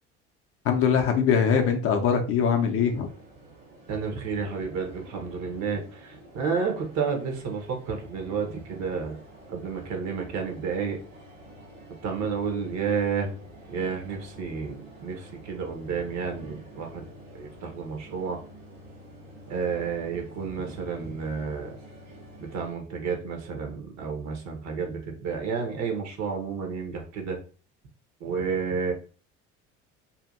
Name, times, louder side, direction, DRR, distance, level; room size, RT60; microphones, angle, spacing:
voice 1, 0.6-3.1, left 7 dB, 40° left, 4 dB, 0.5 m, -22 dB
sound 1, 2.7-22.7, right 1 dB, 85° right, 1.3 m, -49 dB
voice 2, 3.9-9.2 9.5-11.0 12.0-13.3 13.7-17.1 17.3-18.4 19.5-21.8 22.4-27.4 28.2-28.9, right 5 dB, 50° right, 3 dB, 0.9 m, -31 dB
2.8 x 2.5 x 2.4 m, 0.38 s
hypercardioid pair, 65°, 37 cm